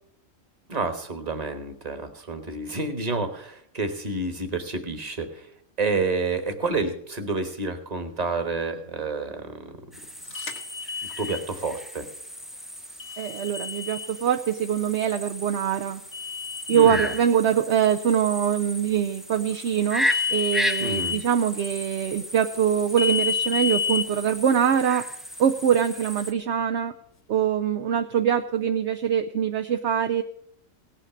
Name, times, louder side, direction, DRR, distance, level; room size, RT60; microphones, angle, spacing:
voice 1, 0.7-5.5 5.8-9.7 11.0-12.1 16.7-17.1 20.8-21.2, right 3 dB, 30° right, 7 dB, 1.4 m, -29 dB
sound 1, 9.9-26.3, equal, ahead, 0.4 m, -35 dB
sound 2, 10.3-11.4 13.0-14.1 16.1-17.2 20.0-21.2 23.0-24.0, left 6 dB, 85° left, 1.9 m, -29 dB
voice 2, 13.2-16.0 16.7-25.1 25.4-26.9 27.3-30.2, right 8 dB, 65° right, 6 dB, 0.9 m, -23 dB
17.5 x 5.8 x 7.2 m, 0.68 s
omnidirectional pair, 1.3 m